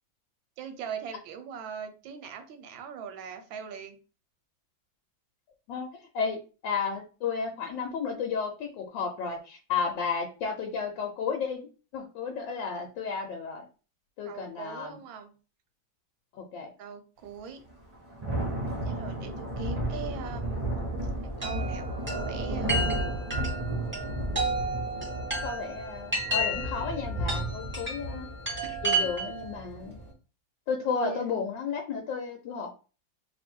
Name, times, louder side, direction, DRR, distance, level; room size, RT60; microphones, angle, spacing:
voice 1, 0.6-4.0 14.2-15.3 16.8-17.6 18.8-20.6 21.2-22.8 28.6-29.1 30.9-31.3, right 7 dB, 85° right, 7 dB, 1.4 m, -40 dB
voice 2, 6.1-11.7 11.9-13.7 14.2-15.0 16.4-16.7 25.4-28.3 28.8-30.0 30.7-32.7, left 5 dB, 75° left, 2 dB, 1.3 m, -33 dB
Thunder / Rain, 17.7-30.1, right 1 dB, 45° right, 0.4 m, -33 dB
Chime, 21.4-29.5, right 2 dB, 5° right, 1.0 m, -32 dB
3.0 x 2.7 x 4.3 m, 0.35 s
omnidirectional pair, 2.1 m